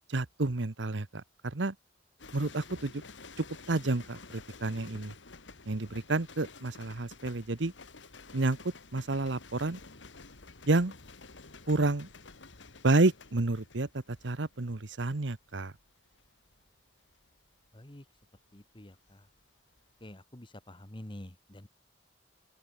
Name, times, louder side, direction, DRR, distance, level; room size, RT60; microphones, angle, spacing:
voice 1, 0.1-1.7 2.3-3.0 3.4-5.1 5.7-7.7 8.3-8.6 8.9-9.8 10.7-10.9 11.7-12.1 12.8-15.7, right 2 dB, 80° right, 1.1 m, -30 dB
sound 1, 2.2-19.4 19.7-20.1, left 4 dB, 80° left, 2.1 m, -52 dB
voice 2, 17.7-18.0 18.5-19.3 20.0-21.7, left 1 dB, 25° left, 1.6 m, -48 dB
open air
head